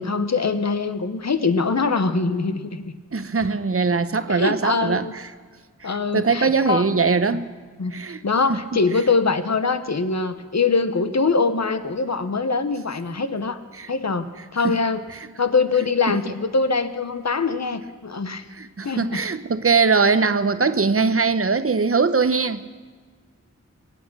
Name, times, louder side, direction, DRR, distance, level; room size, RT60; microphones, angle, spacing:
voice 1, 0.0-2.9 4.3-5.1 5.8-6.8 7.8-8.0 8.2-13.6 13.9-15.0 15.4-18.4 18.8-19.2, left 4 dB, 60° left, 1.0 m, -23 dB
voice 2, 3.1-5.1 5.8-7.4 7.9-8.2 8.5-8.6 13.7-13.9 14.6-14.8 16.1-16.2 18.6-22.6, right 4 dB, 50° right, 0.8 m, -21 dB
23.5 x 9.0 x 6.2 m
wide cardioid pair, 50°, 30 cm